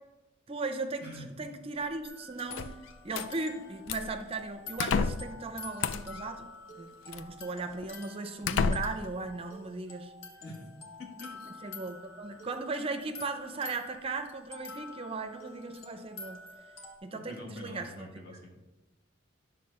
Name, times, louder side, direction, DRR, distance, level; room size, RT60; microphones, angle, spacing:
voice 1, 0.5-2.7 3.0-10.1 11.6-16.4 17.0-18.1, right 3 dB, 30° right, 7 dB, 0.5 m, -37 dB
voice 2, 1.0-1.5 8.4-8.6 10.4-10.7 11.0-11.9 17.1-18.5, left 1 dB, 50° left, 0 dB, 1.8 m, -46 dB
sound 1, 2.0-17.0, left 3 dB, 90° left, 1.4 m, -48 dB
sound 2, 2.5-3.3 3.9-4.2 4.8-5.3 5.8-6.2 7.1-7.2 7.8-7.9 8.4-9.1, left 5 dB, 75° left, 0.4 m, -31 dB
10.5 x 3.7 x 6.7 m, 1.1 s
head